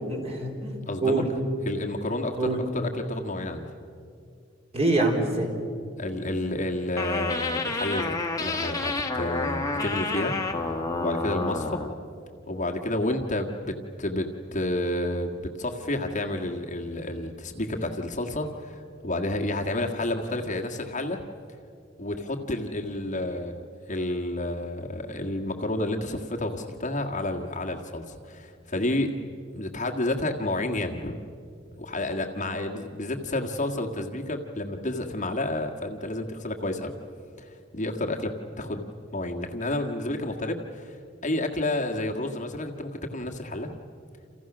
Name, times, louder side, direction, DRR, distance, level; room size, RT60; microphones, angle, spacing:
voice 1, 0.1-1.3 2.4-2.6 4.7-5.5, right 2 dB, 30° right, 1 dB, 4.2 m, -25 dB
voice 2, 0.9-1.2 1.7-3.7 6.0-10.4 11.0-11.9 12.5-21.2 22.0-31.2 31.8-36.9 37.4-38.8 39.1-43.7, left 1 dB, 40° left, 2 dB, 1.7 m, -30 dB
sound 1, 7.0-11.9, left 3 dB, 20° left, 1.7 m, -29 dB
29.0 x 29.0 x 6.1 m, 2.5 s
head